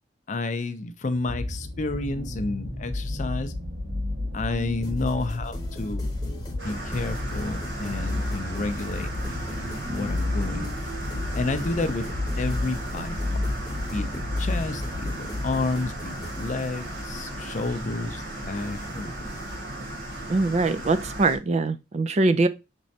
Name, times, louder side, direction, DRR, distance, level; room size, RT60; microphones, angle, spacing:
voice 1, 0.3-3.5 4.3-6.1 6.6-9.1 9.9-10.7 11.3-12.0 12.4-13.5 13.8-19.3, left 3 dB, 40° left, 0.5 m, -30 dB
sound 1, 1.2-16.7 17.5-17.6, left 2 dB, 60° right, 1.5 m, -32 dB
sound 2, 4.8-19.7, left 1 dB, 20° left, 0.9 m, -42 dB
sound 3, 6.6-21.4, right 1 dB, 85° right, 1.5 m, -36 dB
voice 2, 20.3-22.5, right 3 dB, 35° right, 0.4 m, -22 dB
6.0 x 3.2 x 2.7 m
head